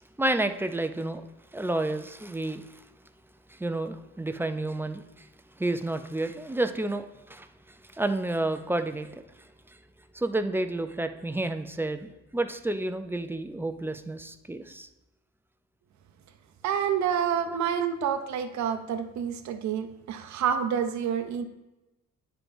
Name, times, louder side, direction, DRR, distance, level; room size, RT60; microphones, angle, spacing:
voice 1, 0.2-1.2 1.5-2.6 3.5-5.3 5.6-7.5 7.9-9.1 10.1-14.9 17.5-17.6, right 2 dB, 5° right, 8 dB, 0.4 m, -30 dB
voice 2, 16.6-21.4, right 8 dB, 65° right, 7 dB, 0.7 m, -28 dB
9.7 x 4.5 x 2.6 m, 1.0 s
cardioid pair, 90°, 30 cm